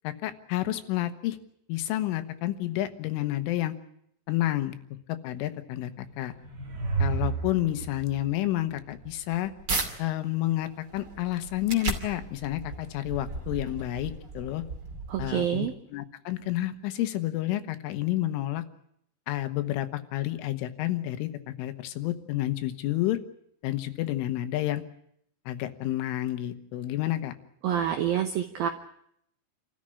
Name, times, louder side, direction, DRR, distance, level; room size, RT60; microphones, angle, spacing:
voice 1, 0.0-1.4 1.7-3.8 4.3-4.8 5.1-6.3 7.0-9.5 10.0-14.6 15.2-18.6 19.3-23.2 23.6-24.8 25.5-27.4, left 14 dB, 80° left, 10 dB, 3.6 m, -30 dB
sound 1, 6.0-9.5, right 5 dB, 60° right, 1.1 m, -32 dB
sound 2, 8.8-9.9 10.4-15.7, right 3 dB, 30° right, 2.1 m, -36 dB
voice 2, 15.1-15.7 27.6-28.7, right 10 dB, 80° right, 6 dB, 2.1 m, -27 dB
27.0 x 14.0 x 9.9 m, 0.72 s
omnidirectional pair, 5.8 m